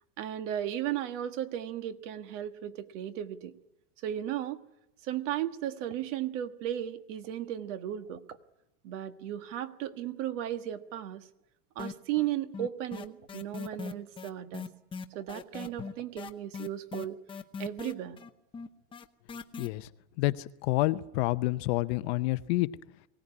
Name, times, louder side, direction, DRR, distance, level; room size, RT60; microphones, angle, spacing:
voice 1, 0.2-3.5 4.0-4.6 5.1-8.2 8.8-11.2 11.7-14.7 15.1-17.2 17.6-18.2, right 11 dB, 50° right, 9 dB, 1.6 m, -35 dB
sound 1, 11.8-12.3 12.5-19.7, left 5 dB, 10° left, 0.8 m, -40 dB
voice 2, 19.6-19.9 20.2-22.7, left 19 dB, 45° left, 13 dB, 0.8 m, -28 dB
23.5 x 17.5 x 9.7 m, 0.91 s
supercardioid pair, 150°, 46 cm